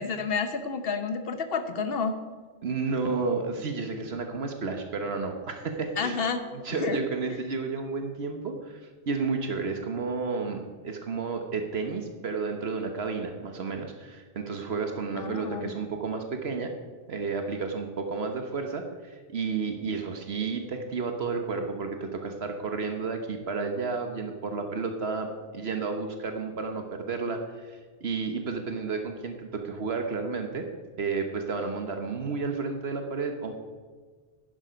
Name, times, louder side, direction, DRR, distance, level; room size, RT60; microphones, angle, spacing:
voice 1, 0.0-2.1 6.0-6.4 6.8-7.0 7.3-7.4 15.2-15.7, left 5 dB, 60° left, 8 dB, 1.2 m, -30 dB
voice 2, 2.6-6.2 6.5-16.7 17.1-30.7 31.0-33.5, right 4 dB, 70° right, 5 dB, 1.3 m, -32 dB
11.0 x 10.5 x 5.1 m, 1.5 s
omnidirectional pair, 1.1 m